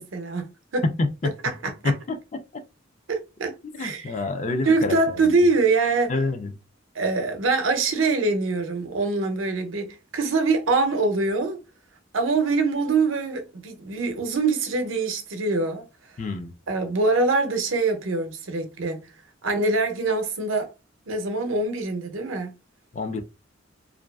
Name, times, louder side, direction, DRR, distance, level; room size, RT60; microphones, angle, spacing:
voice 1, 0.0-0.8 1.4-1.9 3.1-4.1 4.7-6.1 6.9-11.6 12.1-15.9 16.7-19.0 19.4-20.7 21.1-22.5, right 3 dB, 85° right, 0.6 m, -24 dB
voice 2, 1.0-1.3 1.8-2.2 3.8-5.3 6.1-6.5 16.2-16.5 22.9-23.2, left 3 dB, 40° left, 0.4 m, -27 dB
2.4 x 2.3 x 2.2 m
head